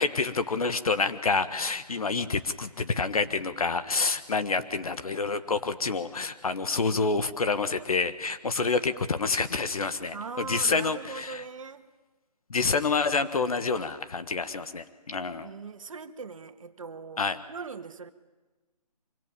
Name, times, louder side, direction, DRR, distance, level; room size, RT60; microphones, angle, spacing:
voice 1, 0.0-11.4 12.5-15.5 17.2-17.4, left 4 dB, 60° left, 11 dB, 1.5 m, -28 dB
voice 2, 10.1-11.8 15.4-18.1, right 5 dB, 55° right, 8 dB, 1.7 m, -40 dB
25.0 x 23.0 x 8.9 m, 1.2 s
hypercardioid pair, 170°, 21 cm